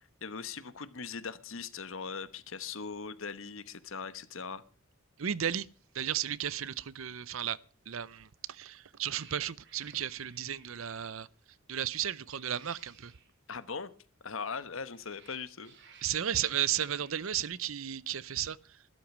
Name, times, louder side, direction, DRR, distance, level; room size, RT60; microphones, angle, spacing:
voice 1, 0.2-4.6 13.5-13.9 14.2-15.7, left 5 dB, 70° left, 1.1 m, -40 dB
voice 2, 5.2-5.7 5.9-7.6 7.9-13.1 16.0-18.9, right 10 dB, 75° right, 0.6 m, -34 dB
Cat, 8.4-8.7 9.1-11.1 12.2-13.3 14.6-17.2, right 6 dB, 55° right, 3.1 m, -59 dB
12.5 x 12.0 x 6.1 m
head